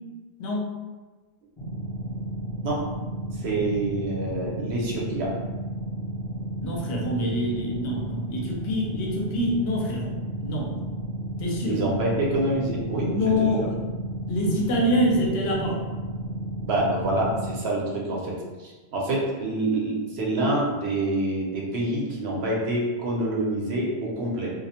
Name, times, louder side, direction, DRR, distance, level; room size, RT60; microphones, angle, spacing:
voice 1, 0.4-0.8 6.6-10.7 11.4-11.8 13.0-13.7 14.3-15.8, equal, 75° left, -1 dB, 0.8 m, -26 dB
sound 1, 1.6-17.6, right 1 dB, 40° left, 0.5 m, -33 dB
voice 2, 3.4-5.3 11.7-13.7 16.6-18.3 18.6-24.5, right 1 dB, 70° right, -4 dB, 0.9 m, -27 dB
2.3 x 2.0 x 2.8 m, 1.3 s
omnidirectional pair, 1.1 m